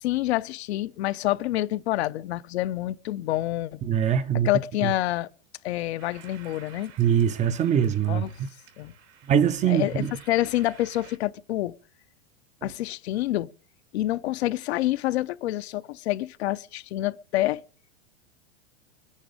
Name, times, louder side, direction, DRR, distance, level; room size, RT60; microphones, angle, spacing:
voice 1, 0.0-3.8 4.4-5.3 5.6-6.9 8.1-8.3 8.8-8.9 9.7-11.7 12.6-13.5 13.9-17.6, left 15 dB, 65° left, 0.7 m, -27 dB
voice 2, 3.8-4.5 4.8-4.9 7.0-8.2 9.3-10.1 12.6-12.7, right 9 dB, 20° right, 0.6 m, -23 dB
sound 1, 6.0-11.2, right 9 dB, 75° right, 3.7 m, -51 dB
22.0 x 9.9 x 5.1 m
hypercardioid pair, 125°, 34 cm